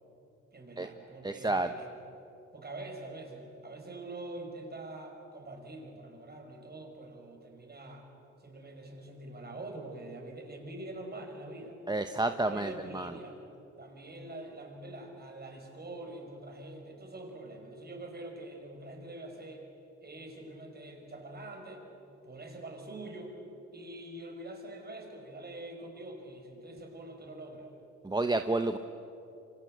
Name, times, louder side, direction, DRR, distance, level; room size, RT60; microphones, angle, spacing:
voice 1, 0.5-1.9 2.5-8.1 8.4-11.8 12.3-13.4 13.8-19.6 20.0-21.9 22.2-23.4 23.7-27.7, right 2 dB, 30° right, 2 dB, 6.2 m, -45 dB
voice 2, 1.2-1.7 11.9-13.1 28.0-28.8, right 2 dB, 15° right, 8 dB, 1.0 m, -30 dB
28.0 x 25.0 x 8.1 m, 2.9 s
cardioid pair, 90°, 30 cm